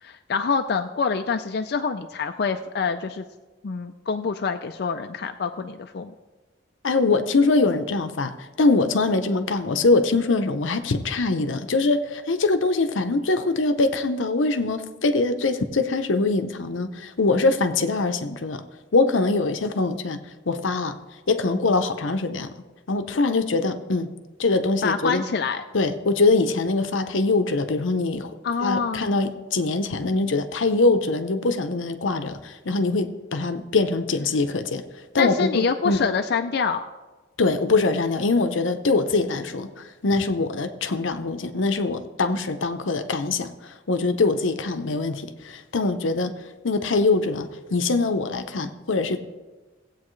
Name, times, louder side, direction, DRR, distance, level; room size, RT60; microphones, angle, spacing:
voice 1, 0.0-3.2 3.6-6.1 24.8-25.6 28.4-29.2 35.2-36.8, left 5 dB, 55° left, 6 dB, 0.4 m, -26 dB
voice 2, 6.8-18.6 18.9-20.2 20.5-21.0 21.3-22.5 22.9-24.1 24.4-25.2 25.7-28.3 28.6-34.8 35.1-36.0 37.4-46.3 46.6-49.2, left 3 dB, 90° left, 8 dB, 0.8 m, -23 dB
17.0 x 8.3 x 3.2 m, 1.2 s
head